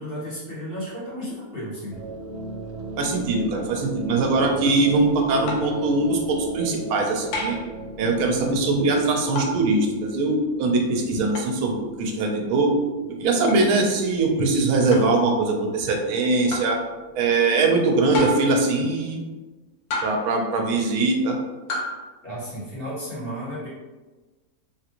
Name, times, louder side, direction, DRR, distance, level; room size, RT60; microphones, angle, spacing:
voice 1, 0.0-2.0 20.7-20.8 22.2-23.7, equal, 40° left, -9 dB, 1.4 m, -33 dB
sound 1, 1.9-18.3, right 3 dB, 65° right, 0.7 m, -38 dB
voice 2, 3.0-7.6 8.0-12.8 13.2-16.8 17.2-19.2 20.0-21.4, right 3 dB, 85° right, 2 dB, 1.1 m, -22 dB
sound 2, 5.5-5.8 7.3-7.7 9.4-9.6 11.3-11.5 13.5-13.7 14.9-15.2 16.5-16.8 18.1-18.6 19.9-20.4 21.7-22.0, left 1 dB, 85° left, 1.2 m, -29 dB
3.4 x 2.5 x 2.9 m, 1.2 s
omnidirectional pair, 1.5 m